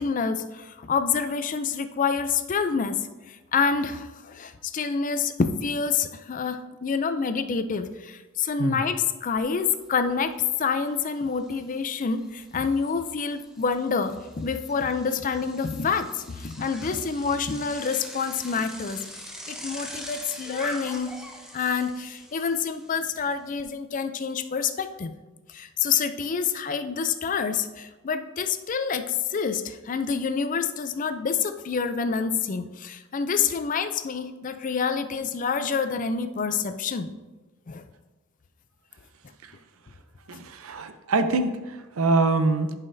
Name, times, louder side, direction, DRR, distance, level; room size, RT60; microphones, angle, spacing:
voice 1, 0.0-3.0 3.5-10.3 10.6-19.0 19.5-21.1 21.5-25.1 25.5-37.1 37.7-37.8, left 5 dB, 40° left, 10 dB, 0.4 m, -27 dB
Bicycle, 9.4-9.5 9.8-23.6, equal, 5° right, 0.7 m, -44 dB
voice 2, 40.3-42.7, right 3 dB, 80° right, 9 dB, 0.6 m, -24 dB
11.0 x 5.7 x 2.6 m, 1.1 s
head